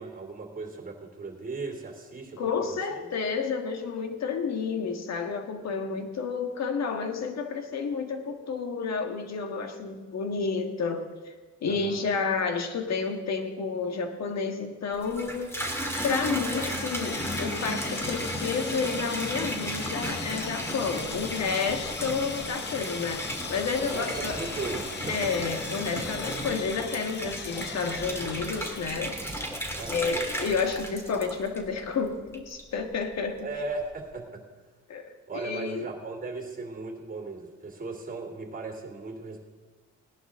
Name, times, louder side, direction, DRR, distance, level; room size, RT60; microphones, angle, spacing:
voice 1, 0.0-3.1 11.6-12.1 23.8-25.3 29.8-30.2 33.4-34.4 35.3-39.4, right 3 dB, 30° right, 3 dB, 2.9 m, -37 dB
voice 2, 2.4-11.3 11.6-15.5 16.0-24.4 25.1-29.2 29.9-33.5 34.9-35.9, left 5 dB, 60° left, 6 dB, 1.6 m, -30 dB
Water tap faucet / Bathtub (filling or washing), 14.9-31.9 32.3-32.9, equal, 10° left, 2.2 m, -34 dB
Sawing, 16.5-28.9, left 6 dB, 35° left, 0.7 m, -39 dB
Thunder, 23.6-32.4, right 1 dB, 5° right, 1.2 m, -46 dB
18.5 x 11.0 x 3.7 m, 1.4 s
cardioid pair, 90°, 30 cm